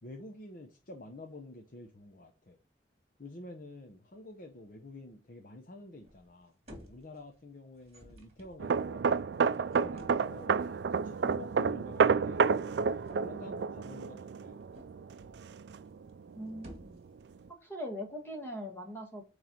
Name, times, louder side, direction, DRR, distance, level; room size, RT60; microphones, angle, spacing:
voice 1, 0.0-2.6 3.2-9.0 9.7-12.4 13.2-14.6, left 2 dB, 50° left, 4 dB, 0.8 m, -49 dB
sound 1, 6.0-6.4 6.7-7.4 7.7-10.4 11.7-11.9 12.2-13.3 14.4-15.4 15.7-16.2 16.5-17.2, equal, 35° right, 2.1 m, -54 dB
sound 2, 8.6-16.1 16.4-16.7, right 5 dB, 70° right, 0.4 m, -30 dB
voice 2, 16.3-17.0 17.6-19.2, equal, 15° left, 2 dB, 1.4 m, -41 dB
9.1 x 3.3 x 5.8 m, 0.34 s
head